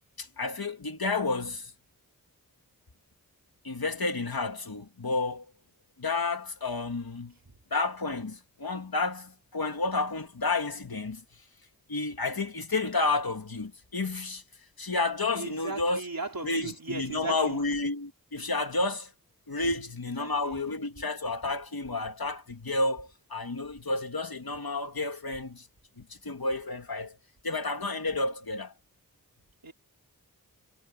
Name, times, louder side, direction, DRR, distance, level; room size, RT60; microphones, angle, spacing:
voice 1, 0.2-1.7 3.6-5.5 6.0-7.3 7.7-11.2 11.9-14.4 14.8-16.0 16.4-19.1 19.5-25.7 26.0-27.2 27.4-28.7, left 3 dB, 90° left, 2.5 m, -31 dB
voice 2, 15.3-17.6 20.2-20.7 29.6-29.7, right 3 dB, 75° right, 3.6 m, -37 dB
wide cardioid pair, 55°, 35 cm